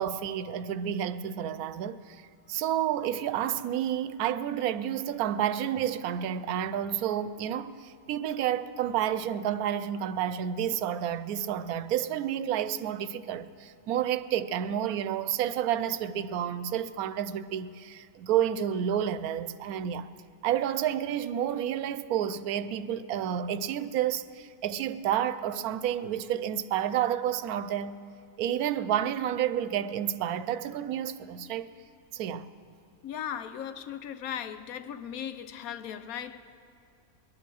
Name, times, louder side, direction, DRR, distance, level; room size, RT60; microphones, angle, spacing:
voice 1, 0.0-2.2 2.5-20.1 20.4-28.0 28.4-31.7 32.1-32.5, right 10 dB, 85° right, 1.1 m, -30 dB
voice 2, 33.0-36.5, left 9 dB, 80° left, 1.2 m, -37 dB
21.0 x 11.0 x 6.3 m
omnidirectional pair, 1.5 m